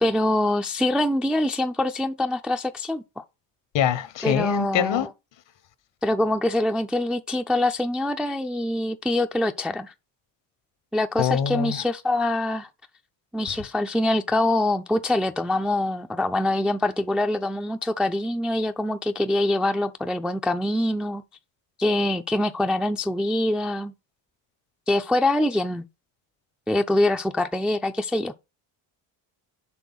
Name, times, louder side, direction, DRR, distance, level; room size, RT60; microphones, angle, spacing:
voice 1, 0.0-3.2 4.2-5.1 6.0-9.9 10.9-12.7 13.3-21.2 21.8-23.9 24.9-25.9 26.7-28.3, left 1 dB, ahead, 0.3 m, -24 dB
voice 2, 3.7-5.1 11.2-11.8, left 9 dB, 65° left, 0.9 m, -24 dB
6.2 x 3.4 x 5.5 m
supercardioid pair, 70°, 48 cm